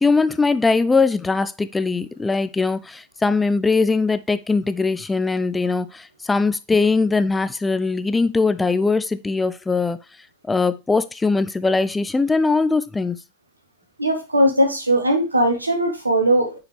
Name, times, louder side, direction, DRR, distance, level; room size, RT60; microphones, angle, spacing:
voice 1, 0.0-10.0 10.5-13.2, left 4 dB, 10° left, 0.4 m, -21 dB
voice 2, 14.0-16.5, right 1 dB, 80° right, 1.4 m, -19 dB
6.6 x 4.8 x 3.2 m
figure-of-eight pair, 90°, 0 cm